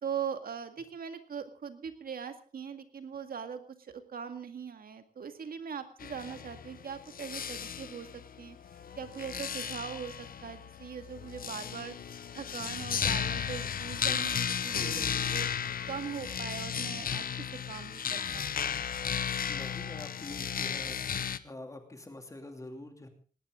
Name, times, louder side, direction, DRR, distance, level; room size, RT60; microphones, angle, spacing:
voice 1, 0.0-8.6 9.0-11.9 12.3-15.5 15.9-18.6, right 7 dB, 75° right, 8 dB, 2.0 m, -41 dB
sound 1, 6.0-21.4, left 8 dB, 70° left, 0.8 m, -35 dB
voice 2, 19.4-21.0 21.4-23.1, left 1 dB, 20° left, 5 dB, 2.7 m, -45 dB
19.0 x 18.0 x 3.8 m, 0.40 s
wide cardioid pair, 155°, 15 cm